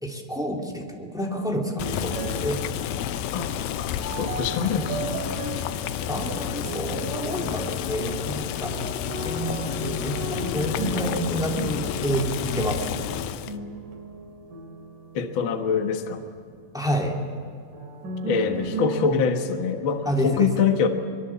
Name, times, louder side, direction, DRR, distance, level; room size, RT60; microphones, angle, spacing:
voice 1, 0.0-2.6 6.1-9.6 9.9-13.0 16.7-17.2 20.1-20.5, equal, ahead, 0 dB, 2.1 m, -29 dB
Boiling, 1.8-13.6, left 11 dB, 85° left, 2.6 m, -31 dB
sound 1, 1.8-16.4 17.7-18.9, right 2 dB, 70° right, 3.9 m, -36 dB
voice 2, 3.3-5.0 15.1-16.3 18.2-20.9, left 6 dB, 50° left, 5 dB, 1.5 m, -25 dB
24.0 x 22.0 x 7.3 m, 2.5 s
omnidirectional pair, 4.0 m